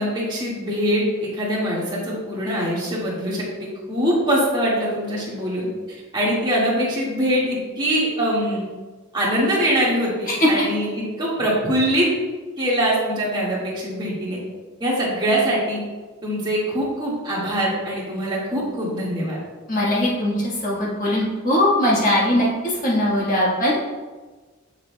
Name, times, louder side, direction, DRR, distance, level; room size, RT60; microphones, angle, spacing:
voice 1, 0.0-5.7 6.1-8.6 9.1-12.1 12.6-14.4 14.8-15.8 16.2-19.4, equal, 20° right, -6 dB, 1.8 m, -23 dB
voice 2, 19.7-20.3 20.6-22.5 22.8-23.7, left 1 dB, 35° left, -5 dB, 1.5 m, -20 dB
6.8 x 6.7 x 2.2 m, 1.3 s
head